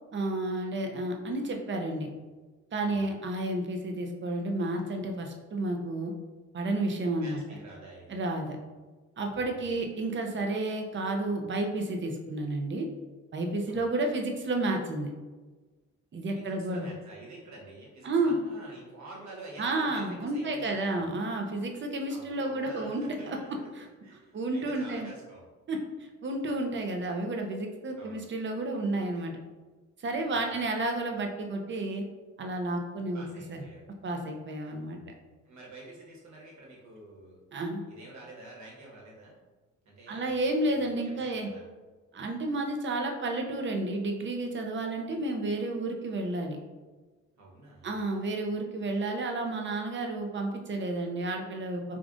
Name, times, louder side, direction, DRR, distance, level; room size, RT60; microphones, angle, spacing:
voice 1, 0.1-2.1 2.7-6.1 6.5-7.4 8.1-8.6 9.2-12.9 13.3-15.1 16.1-16.9 18.0-18.4 19.6-23.4 23.7-23.9 24.3-25.1 25.7-25.8 26.2-29.4 30.0-32.0 32.4-33.2 33.5-33.6 34.0-35.1 37.5-37.8 40.1-41.5 42.1-46.6 47.8-52.0, right 2 dB, 40° right, 3 dB, 0.6 m, -31 dB
voice 2, 2.8-3.2 7.2-8.2 9.5-9.8 13.6-13.9 16.3-21.1 22.1-23.7 24.0-25.5 27.9-28.2 30.2-30.6 33.1-33.8 35.4-37.4 37.9-39.4 39.8-41.6 47.4-48.0, right 2 dB, 65° right, -3 dB, 1.2 m, -48 dB
4.8 x 2.4 x 2.5 m, 1.3 s
cardioid pair, 90°, 30 cm